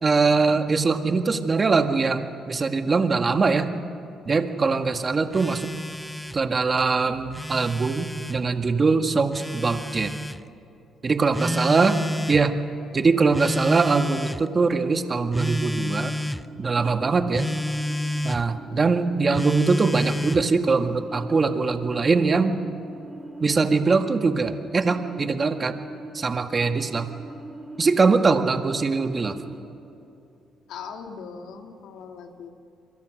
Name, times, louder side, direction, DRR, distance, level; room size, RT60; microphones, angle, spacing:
voice 1, 0.0-3.7 4.3-5.7 6.3-10.1 11.0-12.0 12.3-12.5 12.9-16.1 16.6-17.5 18.2-22.6 23.4-25.8 26.1-27.1 27.8-29.4, right 4 dB, 35° right, 6 dB, 1.8 m, -22 dB
Telephone, 5.3-6.4 7.2-8.4 9.3-10.4 11.3-12.4 13.3-14.5 15.3-16.4 17.3-18.4 19.3-20.5, left 1 dB, 5° left, 0.8 m, -30 dB
voice 2, 11.2-11.6 30.7-32.5, left 6 dB, 85° left, 3 dB, 2.6 m, -40 dB
sound 1, 14.9-29.6, right 2 dB, 20° right, 3.9 m, -41 dB
30.0 x 23.0 x 6.5 m, 2.7 s
cardioid pair, 90°, 0 cm